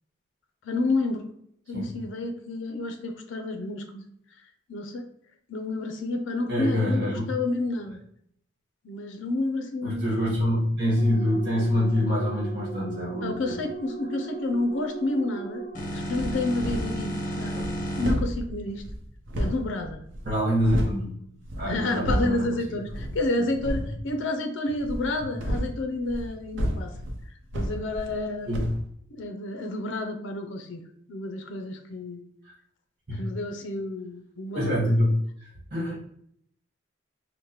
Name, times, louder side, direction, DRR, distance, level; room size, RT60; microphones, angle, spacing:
voice 1, 0.6-1.2 1.7-4.0 4.7-5.1 5.5-8.0 8.8-10.1 13.2-15.7 15.9-17.6 18.0-18.8 19.4-20.0 21.6-26.9 27.5-28.5 29.1-30.8 31.1-32.2 33.1-34.8, left 2 dB, 80° left, 5 dB, 0.5 m, -30 dB
voice 2, 6.5-7.3 9.8-13.6 17.5-17.7 20.2-21.1 21.6-22.8 23.4-23.5 26.9-27.0 28.5-28.7 32.4-32.5 33.1-33.3 34.5-35.9, left 1 dB, 45° right, -6 dB, 1.4 m, -26 dB
sound 1, 11.0-18.1, right 1 dB, 45° left, 0.7 m, -35 dB
sound 2, 16.1-17.0 17.4-21.0 21.4-22.5 22.9-23.2 23.5-23.9 24.8-28.3 28.5-28.8, equal, 80° right, 0.6 m, -31 dB
4.6 x 2.1 x 2.9 m, 0.67 s
head